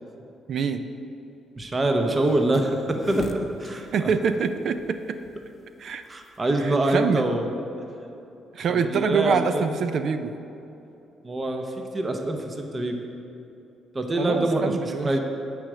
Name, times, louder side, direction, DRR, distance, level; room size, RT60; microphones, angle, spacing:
voice 1, 0.5-0.9 3.9-5.2 5.8-6.0 6.6-7.4 8.5-10.4 14.2-15.1, right 6 dB, 55° right, 9 dB, 0.4 m, -25 dB
voice 2, 1.6-4.1 6.1-7.5 8.7-9.6 11.2-13.0 13.9-15.2, right 1 dB, 20° right, 4 dB, 0.8 m, -25 dB
sound 1, 2.1-7.2, left 3 dB, 35° left, 0.7 m, -40 dB
9.4 x 4.9 x 7.8 m, 2.8 s
cardioid pair, 140°, 0 cm